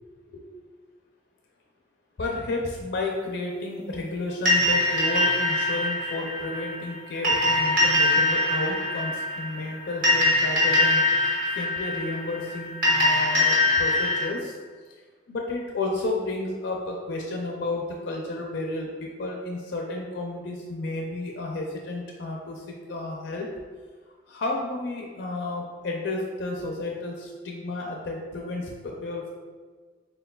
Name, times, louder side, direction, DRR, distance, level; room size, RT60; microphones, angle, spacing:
voice 1, 2.2-11.0 11.5-14.5 15.3-23.5 24.3-29.3, left 2 dB, 70° left, 0 dB, 0.4 m, -32 dB
sound 1, 4.5-14.2, left 2 dB, 50° right, 1.3 m, -23 dB
4.5 x 3.5 x 2.2 m, 1.5 s
head